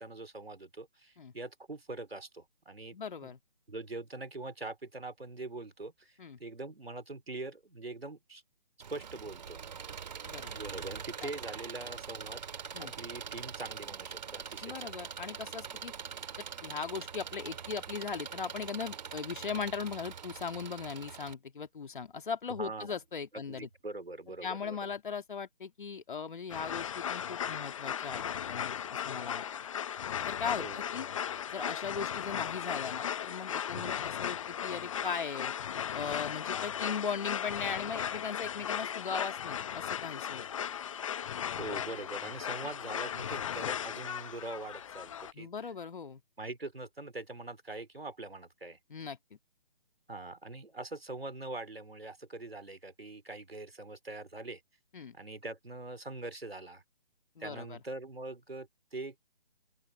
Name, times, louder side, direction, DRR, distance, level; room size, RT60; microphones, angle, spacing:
voice 1, 0.0-3.0 3.2-3.3 3.7-8.4 8.9-9.6 10.5-12.4 12.8-15.0 22.6-23.0 23.5-24.9 30.6-30.8 33.8-34.1 41.6-45.5 46.4-48.8 50.1-54.6 55.1-56.8 57.4-59.2, right 2 dB, 85° right, 3.6 m, -43 dB
voice 2, 2.9-3.4 6.2-6.4 10.2-10.6 11.2-11.3 12.7-12.9 14.6-15.9 16.4-23.7 24.4-29.5 30.2-31.1 31.5-35.5 35.9-40.5 45.3-46.2 48.9-49.2 54.9-55.1 57.4-57.8, left 6 dB, 55° left, 2.6 m, -39 dB
Engine, 8.8-21.3, right 7 dB, 45° right, 2.9 m, -43 dB
sound 1, 26.5-45.3, left 9 dB, 35° left, 1.0 m, -37 dB
open air
figure-of-eight pair, 145°, 29 cm